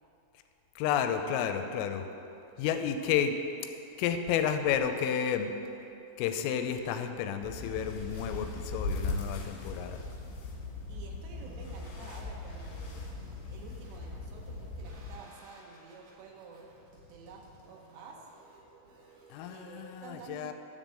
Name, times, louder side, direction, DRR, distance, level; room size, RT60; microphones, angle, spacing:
voice 1, 0.8-2.1 2.6-3.4 4.0-5.5 6.2-10.0 19.3-20.5, left 8 dB, 90° left, 7 dB, 3.3 m, -31 dB
sound 1, 7.4-15.2, left 2 dB, 75° left, 4.0 m, -39 dB
voice 2, 10.9-13.1 13.5-16.6 17.1-18.3 19.5-20.5, right 5 dB, 80° right, 0 dB, 2.7 m, -50 dB
sound 2, 11.3-19.3, right 2 dB, 60° right, 2.1 m, -58 dB
10.0 x 5.3 x 7.4 m, 2.8 s
omnidirectional pair, 5.7 m